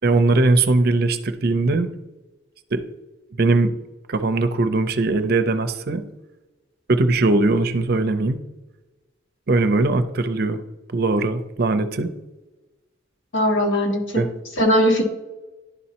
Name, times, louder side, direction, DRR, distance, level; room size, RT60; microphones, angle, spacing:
voice 1, 0.0-1.9 2.7-2.8 3.4-3.7 4.1-6.0 6.9-8.4 9.5-10.6 10.9-12.1 14.1-14.3, right 3 dB, 50° right, 10 dB, 0.5 m, -20 dB
voice 2, 13.3-14.3 14.6-15.0, equal, 75° left, 0 dB, 1.6 m, -19 dB
11.0 x 4.2 x 2.9 m, 1.1 s
head